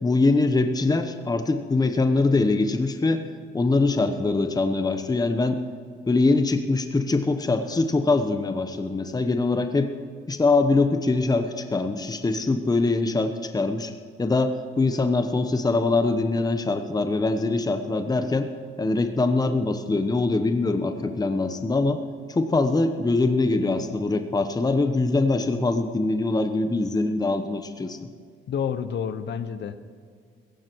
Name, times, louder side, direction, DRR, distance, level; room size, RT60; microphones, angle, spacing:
voice 1, 0.0-3.2 3.5-5.6 6.1-9.9 10.3-13.9 14.2-18.5 18.8-22.0 22.3-28.1, left 3 dB, 20° left, 8 dB, 1.0 m, -23 dB
voice 2, 28.5-29.8, left 7 dB, 65° left, 12 dB, 1.0 m, -29 dB
16.5 x 15.0 x 4.7 m, 2.2 s
cardioid pair, 90°, 20 cm